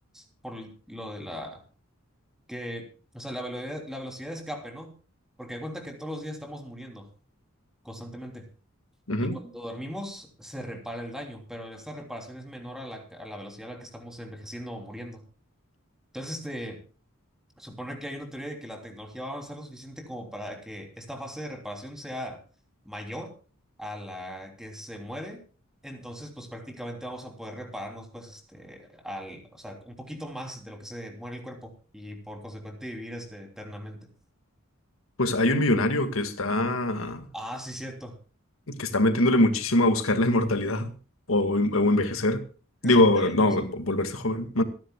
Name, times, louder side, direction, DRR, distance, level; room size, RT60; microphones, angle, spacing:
voice 1, 0.1-1.6 2.5-2.9 3.1-4.9 5.4-7.1 7.8-8.5 9.2-15.2 16.1-16.8 17.6-22.4 22.8-23.3 23.8-25.4 25.8-34.1 37.3-38.2 42.8-43.7, equal, 5° right, 3.2 m, -39 dB
voice 2, 9.1-9.4 35.2-37.3 38.7-40.9 41.3-42.4 42.8-44.6, left 1 dB, 75° left, 2.0 m, -23 dB
26.5 x 10.5 x 2.3 m
head